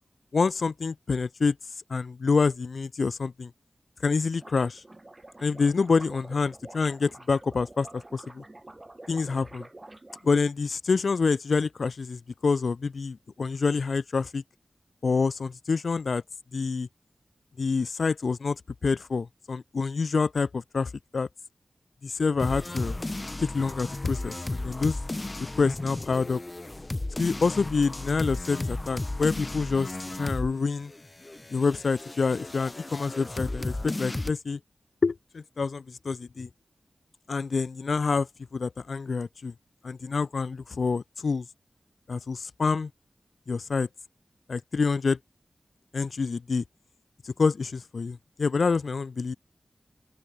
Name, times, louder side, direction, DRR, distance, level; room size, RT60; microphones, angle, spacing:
voice 1, 0.3-1.5 1.9-3.5 4.0-4.8 5.4-8.4 9.1-9.6 10.2-14.4 15.0-16.2 16.5-16.9 17.6-21.3 22.0-23.0 23.4-25.0 25.6-26.4 27.2-30.9 31.5-34.6 35.0-36.5 37.3-38.3 38.5-39.5 39.8-41.4 42.1-42.9 43.5-43.9 44.5-45.2 45.9-46.6 47.2-49.3, left 4 dB, 70° left, 0.3 m, -27 dB
sound 1, 4.4-10.3, right 2 dB, 30° right, 2.7 m, -48 dB
sound 2, 22.4-30.6 30.8-34.3, left 2 dB, 30° left, 0.6 m, -34 dB
open air
wide cardioid pair, 75°, 0 cm